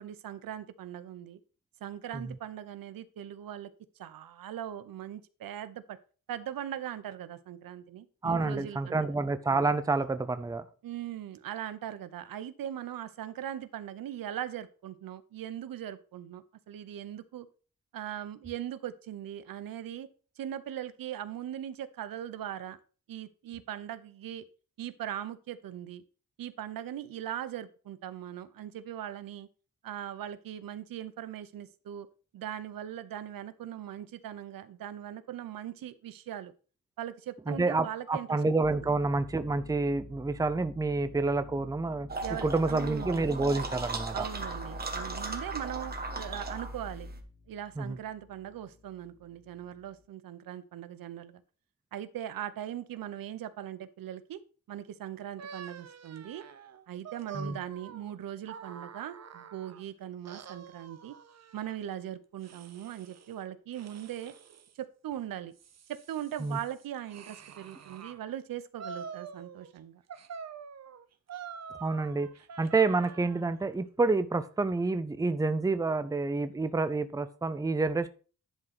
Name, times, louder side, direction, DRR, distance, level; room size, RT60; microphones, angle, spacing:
voice 1, 0.0-1.4 1.8-3.7 4.0-6.0 6.3-9.1 10.8-17.5 17.9-20.1 20.4-22.8 23.1-24.4 24.8-26.0 26.4-29.5 29.8-32.1 32.3-36.5 37.0-38.4 38.8-38.9 42.2-43.3 44.1-47.1 47.5-51.4 51.9-54.4 54.7-56.4 56.9-61.1 61.5-64.4 64.8-65.5 65.9-70.0, right 11 dB, 80° right, 13 dB, 0.8 m, -40 dB
voice 2, 8.2-10.6 37.5-42.1 42.4-44.3 47.8-48.0 57.3-57.6 66.4-66.6 71.8-72.3 72.6-78.1, right 3 dB, 10° right, 11 dB, 0.6 m, -28 dB
sound 1, 38.6-50.1, left 3 dB, 60° left, 4.2 m, -52 dB
sound 2, 42.1-47.2, right 2 dB, 30° right, 1.4 m, -37 dB
sound 3, 55.4-59.8 60.3-61.8 62.4-63.3 63.7-64.7 65.3-68.2 68.8-69.8 70.1-73.5, right 6 dB, 50° right, 0.9 m, -47 dB
11.0 x 3.8 x 5.9 m, 0.38 s
cardioid pair, 110°, 33 cm